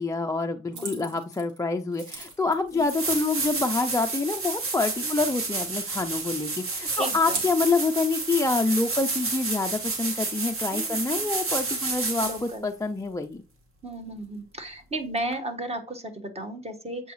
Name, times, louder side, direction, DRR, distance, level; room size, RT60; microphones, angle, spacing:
voice 1, 0.0-13.4, left 3 dB, 10° left, 4 dB, 0.4 m, -27 dB
voice 2, 0.7-1.1 2.8-2.9 5.0-5.3 7.0-7.4 10.7-11.3 12.2-12.6 13.8-17.1, right 1 dB, 20° right, 6 dB, 1.4 m, -35 dB
sound 1, 0.7-1.6 1.9-3.3 3.8-4.5 5.0-5.9 6.3-8.6 9.5-12.3, right 3 dB, 75° right, 2.5 m, -41 dB
sound 2, 2.3-2.4 2.8-12.5 15.3-15.4, right 3 dB, 45° right, 1.8 m, -30 dB
8.0 x 4.7 x 3.0 m, 0.34 s
cardioid pair, 90°, 30 cm